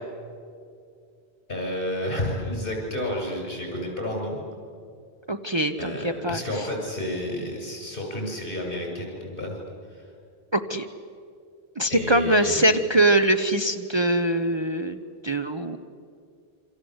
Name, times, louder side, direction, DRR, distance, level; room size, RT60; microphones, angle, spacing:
voice 1, 1.5-4.4 5.8-9.6 9.9-10.1 11.9-12.6, left 1 dB, 60° left, 0 dB, 7.7 m, -30 dB
voice 2, 5.3-6.7 10.5-10.9 11.8-15.8, right 1 dB, 30° right, 6 dB, 0.9 m, -23 dB
27.5 x 26.0 x 8.0 m, 2.3 s
omnidirectional pair, 1.0 m